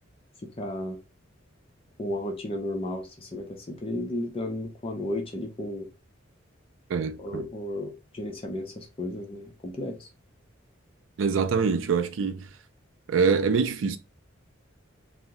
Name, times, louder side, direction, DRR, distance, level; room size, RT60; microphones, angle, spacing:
voice 1, 0.6-1.0 2.0-5.9 7.2-10.1, left 1 dB, 30° left, 0.5 m, -33 dB
voice 2, 6.9-7.5 11.2-12.5 13.1-14.0, right 5 dB, 75° right, 0.4 m, -24 dB
2.7 x 2.0 x 3.5 m
head